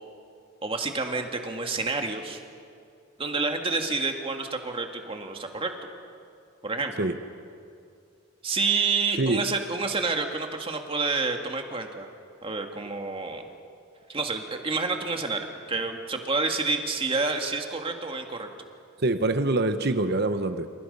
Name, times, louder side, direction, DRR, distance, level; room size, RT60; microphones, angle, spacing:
voice 1, 0.6-2.4 3.2-5.9 6.6-7.1 8.4-12.1 12.4-13.5 14.1-18.5, right 4 dB, 30° right, 4 dB, 2.1 m, -29 dB
voice 2, 19.0-20.7, right 2 dB, 55° right, 9 dB, 1.0 m, -25 dB
29.0 x 27.5 x 5.5 m, 2.3 s
head